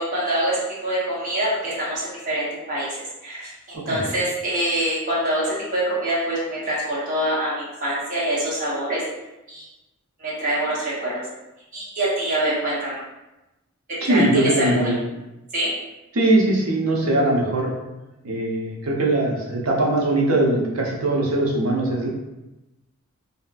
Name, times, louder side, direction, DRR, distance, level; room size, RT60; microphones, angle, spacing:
voice 1, 0.0-2.9 3.2-9.0 9.5-9.6 10.2-11.2 11.7-13.0 14.0-15.0 15.5-15.7, right 1 dB, 40° right, -8 dB, 1.1 m, -25 dB
voice 2, 14.0-14.9 16.1-17.7 18.2-22.1, right 1 dB, 75° right, -2 dB, 0.6 m, -21 dB
2.7 x 2.3 x 2.5 m, 0.99 s
head